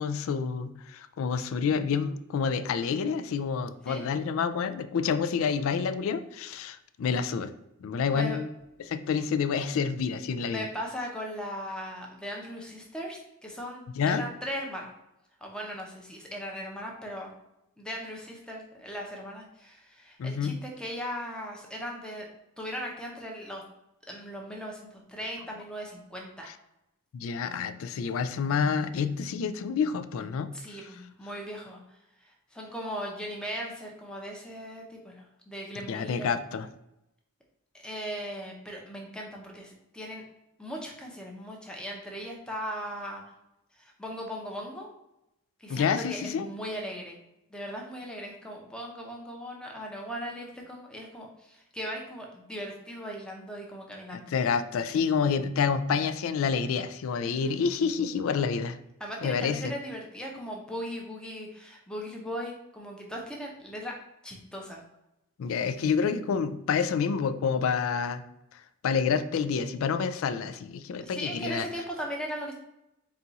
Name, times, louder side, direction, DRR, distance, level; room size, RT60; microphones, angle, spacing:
voice 1, 0.0-7.5 7.8-8.5 8.8-10.7 14.0-14.3 20.2-20.6 27.1-30.8 35.9-36.7 45.7-46.5 54.1-58.8 59.2-59.7 65.4-68.2 68.8-71.7, left 6 dB, 70° left, 10 dB, 0.3 m, -28 dB
voice 2, 10.5-14.9 15.4-17.3 17.8-22.3 22.6-23.6 24.1-26.5 30.5-31.8 32.2-36.3 37.8-40.2 40.6-43.2 43.8-44.9 45.6-47.2 47.5-54.3 57.2-57.6 59.0-63.9 64.2-64.8 71.0-72.5, equal, 5° left, -1 dB, 0.6 m, -38 dB
4.2 x 2.4 x 3.9 m, 0.87 s
head